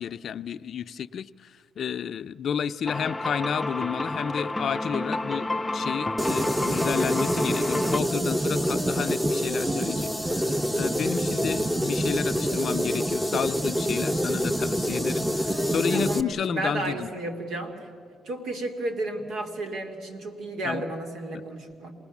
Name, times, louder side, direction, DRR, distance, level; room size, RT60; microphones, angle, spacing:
voice 1, 0.0-1.5 1.8-17.1 20.6-20.9, left 8 dB, 60° left, 13 dB, 0.5 m, -31 dB
sound 1, 2.9-8.0, left 2 dB, 10° left, 0.6 m, -30 dB
sound 2, 6.2-16.2, equal, 10° right, 0.9 m, -26 dB
voice 2, 15.9-17.9 18.2-21.9, right 2 dB, 80° right, 5 dB, 2.7 m, -33 dB
27.5 x 19.5 x 7.2 m, 2.3 s
cardioid pair, 90°, 0 cm